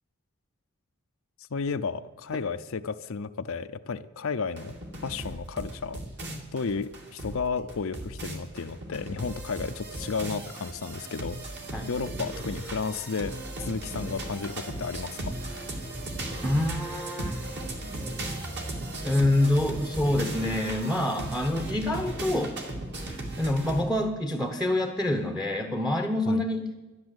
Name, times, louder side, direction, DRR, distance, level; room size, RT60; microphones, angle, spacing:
voice 1, 1.5-4.8 5.0-6.0 6.5-11.4 11.9-15.3 26.3-26.4, left 5 dB, 65° left, 10 dB, 0.6 m, -33 dB
sound 1, 4.6-23.8, right 1 dB, 50° right, 2.5 m, -37 dB
voice 2, 16.4-17.4 19.0-22.5 23.1-26.7, left 1 dB, ahead, 5 dB, 0.8 m, -26 dB
12.5 x 11.0 x 7.9 m, 1.2 s
head